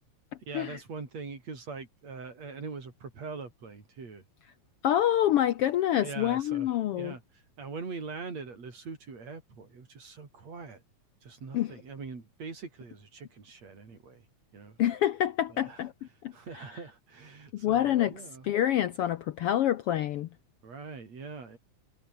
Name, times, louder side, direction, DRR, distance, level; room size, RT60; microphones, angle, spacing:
voice 1, 0.5-4.2 6.0-10.8 11.2-14.3 14.5-14.8 15.5-15.8 16.3-18.5 20.6-21.6, right 4 dB, 60° right, 5.8 m, -43 dB
voice 2, 4.8-7.1 11.5-11.7 14.8-15.9 16.2-16.3 17.5-18.1 18.4-20.3, left 12 dB, 75° left, 1.4 m, -26 dB
omnidirectional pair, 3.5 m